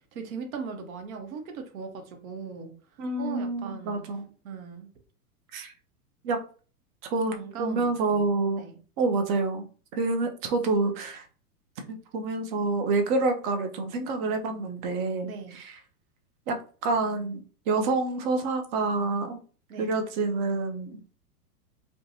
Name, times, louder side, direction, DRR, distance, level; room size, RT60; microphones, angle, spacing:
voice 1, 0.1-2.7 3.2-4.0 4.4-4.9 7.3-8.3 8.6-8.8 15.2-15.6 19.7-19.9, right 5 dB, 60° right, 5 dB, 0.8 m, -39 dB
voice 2, 3.0-4.2 5.5-5.7 6.2-6.4 7.1-8.6 9.0-9.7 9.9-11.2 11.9-15.7 16.5-16.6 16.8-19.4 19.8-21.0, right 3 dB, 35° right, 5 dB, 0.5 m, -27 dB
2.7 x 2.2 x 2.6 m, 0.39 s
hypercardioid pair, 115°, 47 cm